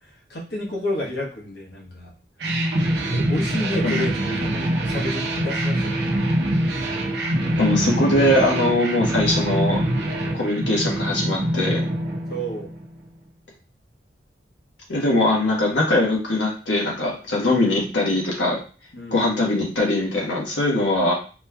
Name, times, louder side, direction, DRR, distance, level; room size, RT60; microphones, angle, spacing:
voice 1, 0.3-2.1 3.1-6.2 12.3-12.7 17.5-17.8 18.9-19.2, equal, 70° left, -2 dB, 1.1 m, -30 dB
sound 1, 2.4-12.9, right 1 dB, 70° right, 0.7 m, -24 dB
voice 2, 7.6-9.8 10.3-11.8 14.9-18.6 19.1-21.1, left 1 dB, 90° left, -2 dB, 1.3 m, -21 dB
4.3 x 2.9 x 2.2 m, 0.36 s
head